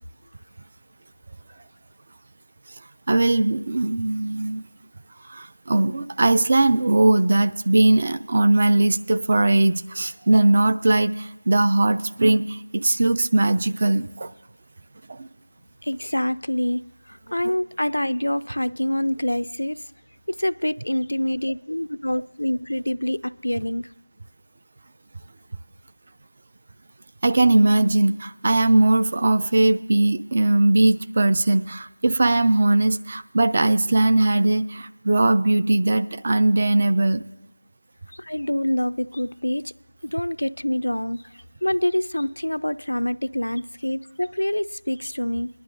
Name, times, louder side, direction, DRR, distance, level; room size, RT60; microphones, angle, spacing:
voice 1, 3.1-4.6 5.3-14.3 15.1-15.3 27.2-37.2, right 2 dB, 25° right, 9 dB, 0.3 m, -19 dB
voice 2, 15.8-19.8 20.3-23.9 38.1-39.7 40.0-45.5, left 1 dB, 90° left, 13 dB, 0.4 m, -26 dB
22.0 x 11.0 x 2.5 m, 0.98 s
figure-of-eight pair, 175°, 0 cm